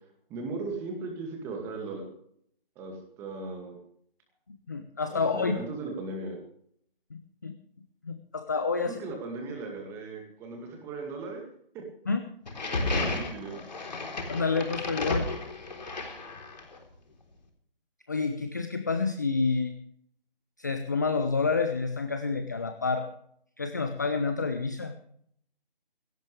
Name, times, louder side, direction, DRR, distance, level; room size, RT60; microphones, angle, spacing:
voice 1, 0.3-2.1 2.8-3.8 5.1-6.4 8.8-11.4 11.7-11.8 12.6-13.6, right 3 dB, 10° right, 2 dB, 2.1 m, -37 dB
voice 2, 4.5-5.6 7.1-7.5 8.0-9.0 12.1-12.2 14.3-15.3 18.1-19.7 20.6-23.1 23.6-25.0, left 4 dB, 20° left, 8 dB, 0.6 m, -29 dB
sound 1, 12.5-16.8, left 2 dB, 45° left, 3.7 m, -33 dB
18.5 x 17.0 x 3.3 m, 0.66 s
figure-of-eight pair, 150°, 29 cm